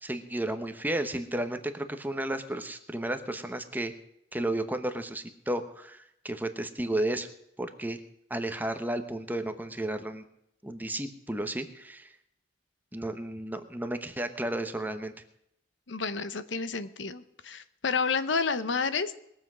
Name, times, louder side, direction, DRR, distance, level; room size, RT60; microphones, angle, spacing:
voice 1, 0.0-3.9 4.3-7.3 7.6-8.0 8.3-10.2 10.6-12.1 12.9-15.1, right 1 dB, 10° right, 8 dB, 1.0 m, -33 dB
voice 2, 15.9-19.2, left 5 dB, 70° left, 13 dB, 0.8 m, -30 dB
21.0 x 7.7 x 6.2 m, 0.77 s
head